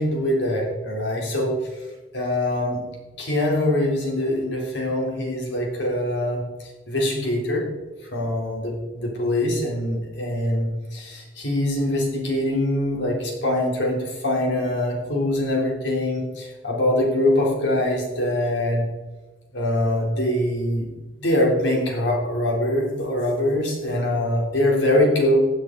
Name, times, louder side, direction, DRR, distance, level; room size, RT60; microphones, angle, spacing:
voice 1, 0.0-1.5 2.1-2.8 3.2-7.6 8.0-18.9 19.5-20.9 21.2-25.4, left 1 dB, 75° left, -1 dB, 3.4 m, -23 dB
15.5 x 8.0 x 4.0 m, 1.2 s
head